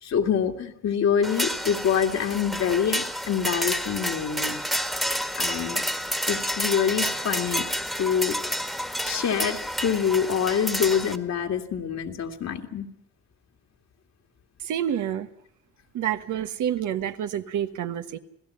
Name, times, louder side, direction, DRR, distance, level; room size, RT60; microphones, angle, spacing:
voice 1, 0.0-4.6 5.4-5.8 6.3-7.7 8.0-8.4 9.0-12.9, left 7 dB, 60° left, 4 dB, 2.3 m, -26 dB
sound 1, 1.2-11.2, equal, ahead, 1.6 m, -29 dB
voice 2, 14.6-15.3 15.9-18.2, right 10 dB, 80° right, 8 dB, 1.4 m, -28 dB
27.5 x 17.0 x 5.6 m, 0.73 s
cardioid pair, 90°, 30 cm